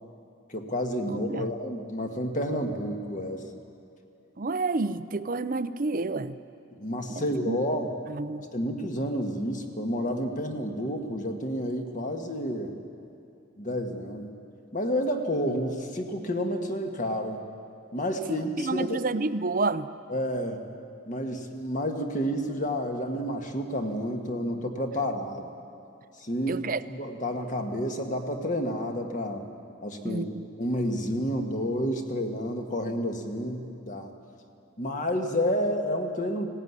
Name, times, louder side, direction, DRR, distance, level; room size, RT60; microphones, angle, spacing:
voice 1, 0.5-3.4 6.8-7.9 8.5-12.8 13.6-14.3 14.7-17.4 17.9-19.0 20.1-20.6 21.1-25.5 26.2-29.5 29.8-30.3 30.6-34.1 34.8-36.5, equal, 40° left, 4 dB, 1.7 m, -30 dB
voice 2, 1.1-1.5 4.4-6.4 7.1-7.6 8.1-8.5 18.3-19.9 26.5-26.8 30.0-30.5, right 3 dB, 40° right, 14 dB, 0.6 m, -30 dB
19.0 x 17.0 x 9.7 m, 2.7 s
head